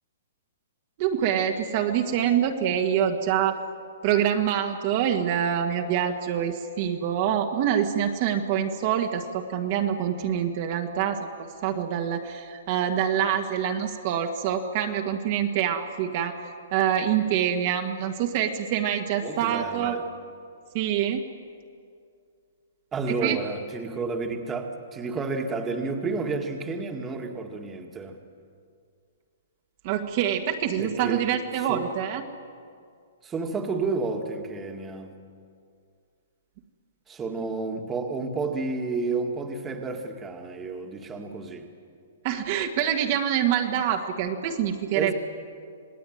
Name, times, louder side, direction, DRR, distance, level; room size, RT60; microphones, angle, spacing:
voice 1, 1.0-3.6 4.0-11.3 11.6-16.3 16.7-20.0 20.7-21.2 23.2-23.4 29.8-32.2 42.2-45.1, right 9 dB, 40° right, 3 dB, 1.7 m, -25 dB
voice 2, 19.2-20.0 22.9-28.2 30.8-31.3 31.5-31.9 33.2-35.1 37.1-41.7 44.9-45.1, right 3 dB, 15° right, 3 dB, 2.0 m, -31 dB
27.0 x 19.0 x 9.4 m, 2.3 s
hypercardioid pair, 150°, 0 cm